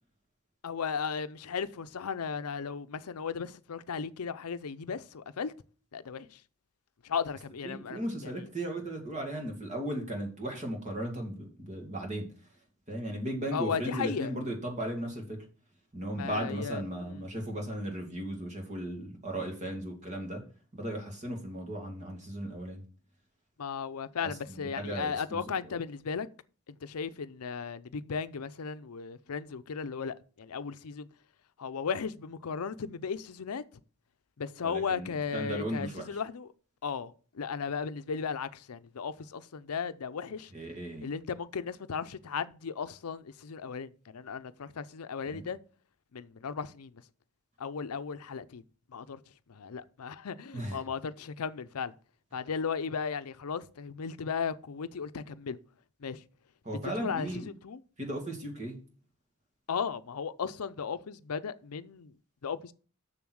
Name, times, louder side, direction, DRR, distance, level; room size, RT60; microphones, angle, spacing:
voice 1, 0.6-5.5 5.9-6.4 7.0-8.5 13.5-14.4 16.1-17.2 23.6-26.3 26.7-31.1 31.6-33.6 34.4-36.5 36.8-40.5 41.0-45.6 46.1-47.0 47.6-48.6 48.9-49.2 49.5-51.9 52.3-55.6 56.0-56.2 56.8-57.8 59.7-62.2 62.4-62.7, left 6 dB, 90° left, 0.6 m, -36 dB
voice 2, 7.6-12.3 12.9-15.4 15.9-20.4 20.7-22.8 24.5-25.7 34.6-36.0 40.5-41.1 45.2-45.4 50.5-50.8 56.6-57.5 58.0-58.8, right 1 dB, 30° right, 2.3 m, -36 dB
7.1 x 6.5 x 6.3 m
head